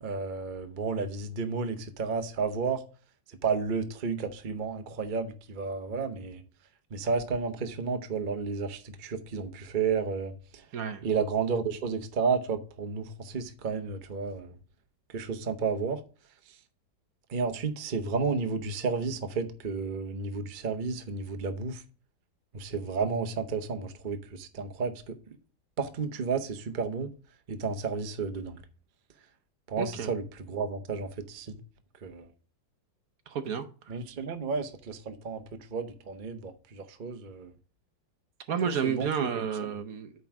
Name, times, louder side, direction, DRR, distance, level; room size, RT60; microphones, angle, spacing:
voice 1, 0.0-2.8 3.4-6.4 6.9-10.6 11.0-14.5 15.1-16.0 17.3-21.8 22.5-25.1 25.8-27.1 27.5-28.6 29.7-31.6 32.0-32.3 33.9-37.5 38.7-39.4, right 5 dB, 45° right, 0.6 m, -32 dB
voice 2, 10.7-11.0 29.8-30.1 33.3-33.9 38.5-40.1, right 7 dB, 60° right, 1.1 m, -31 dB
9.3 x 3.8 x 5.8 m
omnidirectional pair, 2.0 m